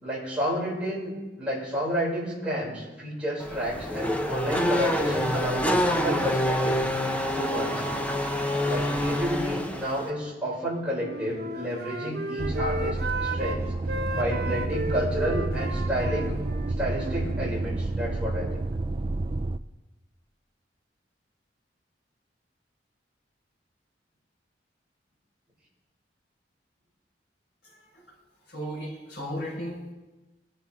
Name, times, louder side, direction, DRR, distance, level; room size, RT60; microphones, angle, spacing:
voice 1, 0.0-6.9 7.3-7.8 8.6-13.7 14.1-16.3 16.8-18.7, equal, 5° right, -7 dB, 6.2 m, -31 dB
Race car auto racing / Accelerating revving vroom, 3.4-10.1, left 1 dB, 10° left, 1.0 m, -27 dB
Wind instrument woodwind instrument, 10.9-13.6 13.9-17.5, right 1 dB, 60° right, 1.0 m, -34 dB
sound 1, 12.4-19.6, right 2 dB, 30° right, 0.4 m, -30 dB
voice 2, 28.5-29.9, equal, 75° left, -7 dB, 4.8 m, -35 dB
22.5 x 11.5 x 3.7 m, 1.1 s
head